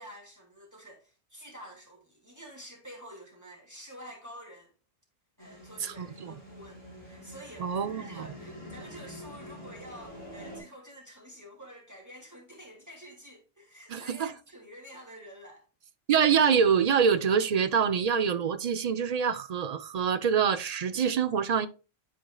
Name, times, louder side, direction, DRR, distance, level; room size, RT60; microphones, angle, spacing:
voice 1, 0.0-4.7 5.4-15.6, equal, 15° right, 2.2 m, -49 dB
sound 1, 5.4-10.6, equal, 25° left, 4.0 m, -46 dB
voice 2, 5.8-6.4 7.6-8.3 13.9-14.3 16.1-21.7, right 7 dB, 55° right, 0.4 m, -25 dB
11.5 x 4.3 x 2.3 m
omnidirectional pair, 1.1 m